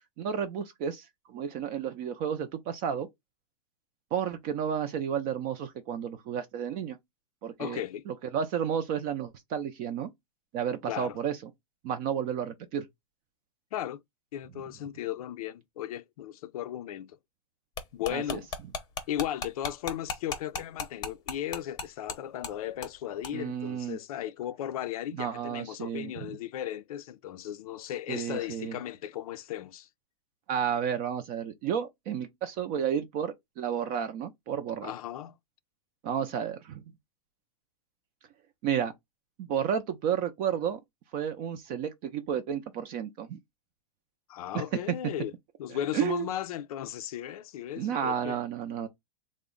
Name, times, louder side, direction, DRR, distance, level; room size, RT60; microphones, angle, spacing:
voice 1, 0.2-3.1 4.1-7.0 7.4-10.1 10.5-11.5 11.8-12.9 18.1-18.4 23.3-24.0 25.2-26.4 28.1-28.8 30.5-34.9 36.0-36.8 38.6-38.9 39.4-40.8 41.1-43.4 44.5-44.6 45.9-46.3 47.8-48.9, right 8 dB, 35° right, 0.4 m, -32 dB
voice 2, 7.6-8.1 10.9-11.2 13.7-14.0 14.3-17.2 17.9-18.5 19.1-29.9 34.8-35.3 44.3-45.3 45.6-48.4, left 11 dB, 70° left, 0.5 m, -36 dB
sound 1, 17.8-22.2 22.4-22.5 22.8-23.0 23.2-23.3, left 5 dB, 20° left, 0.7 m, -35 dB
3.5 x 2.1 x 3.7 m
supercardioid pair, 150°, 19 cm